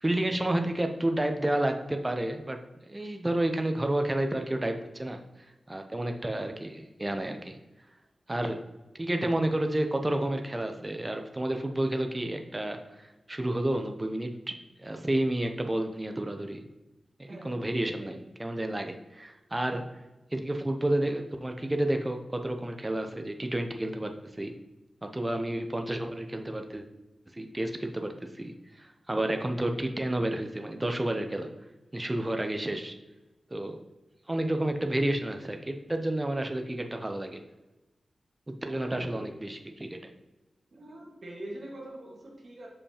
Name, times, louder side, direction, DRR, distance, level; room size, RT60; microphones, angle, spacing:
voice 1, 0.0-2.6 2.9-5.2 5.7-7.6 8.3-8.6 9.0-16.6 17.2-20.0 20.3-24.5 25.0-26.8 27.3-31.5 31.9-33.0 33.5-33.9 34.3-37.4 38.5-40.1, right 1 dB, 20° right, 5 dB, 0.6 m, -30 dB
voice 2, 17.3-18.1 38.7-39.3 40.7-42.7, right 1 dB, 55° right, -2 dB, 1.7 m, -44 dB
6.6 x 5.4 x 2.9 m, 1.1 s
wide cardioid pair, 95°, 0 cm